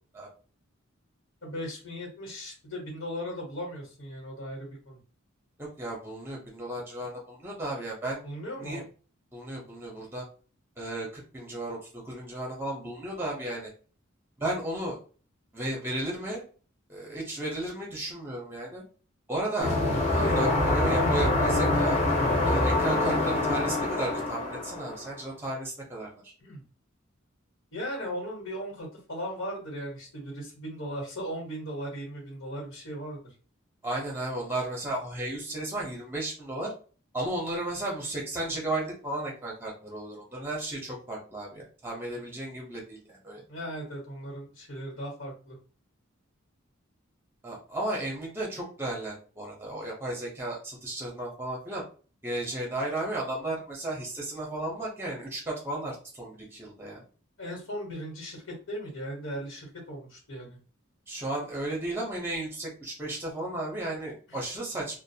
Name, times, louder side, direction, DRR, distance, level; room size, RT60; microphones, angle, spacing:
voice 1, 1.4-5.0 8.2-8.8 26.4-26.6 27.7-33.3 43.5-45.6 57.4-60.6, equal, 80° left, -2 dB, 1.2 m, -37 dB
voice 2, 5.6-8.2 8.6-8.8 9.3-10.2 10.8-13.7 14.4-15.0 15.5-16.4 16.9-18.8 19.3-19.7 20.1-22.0 22.4-26.3 33.8-36.7 37.1-43.4 47.4-51.8 52.2-57.0 61.1-65.0, right 1 dB, 10° right, -2 dB, 0.7 m, -34 dB
sound 1, 19.6-25.1, left 2 dB, 35° left, 0.8 m, -25 dB
2.5 x 2.1 x 2.7 m, 0.39 s
head